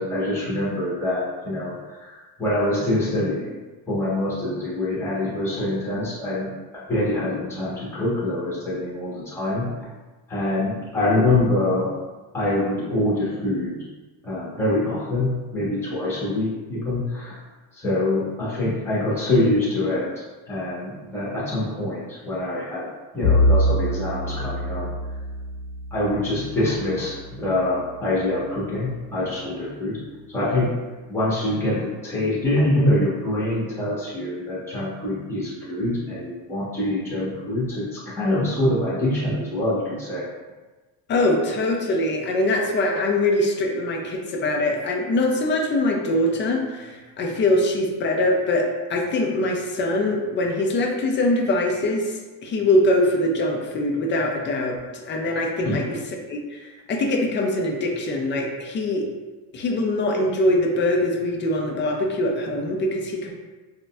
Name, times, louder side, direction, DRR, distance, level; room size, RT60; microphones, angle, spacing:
voice 1, 0.0-1.7 2.4-3.6 3.9-6.5 6.9-9.7 10.3-11.9 12.3-13.7 14.2-17.3 17.8-20.1 20.5-22.9 23.1-24.9 25.9-30.0 30.3-30.7 31.1-40.3, left 1 dB, 5° left, -8 dB, 1.1 m, -24 dB
Bowed string instrument, 23.2-27.8, equal, 55° left, 0.7 m, -24 dB
voice 2, 41.1-48.6 48.9-52.1 52.4-56.0 56.3-59.1 59.5-63.3, left 1 dB, 25° left, 2 dB, 0.3 m, -23 dB
4.0 x 2.2 x 2.3 m, 1.3 s
supercardioid pair, 105°, 48 cm